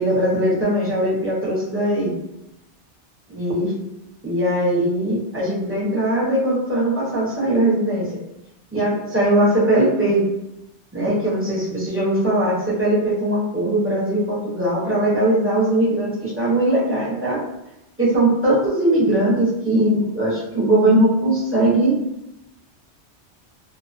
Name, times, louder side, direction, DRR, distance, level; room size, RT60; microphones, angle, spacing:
voice 1, 0.0-2.1 3.3-3.7 4.2-8.1 8.7-10.2 10.9-17.4 18.0-22.0, right 1 dB, 15° right, -8 dB, 0.6 m, -20 dB
2.3 x 2.2 x 2.4 m, 0.88 s
omnidirectional pair, 1.2 m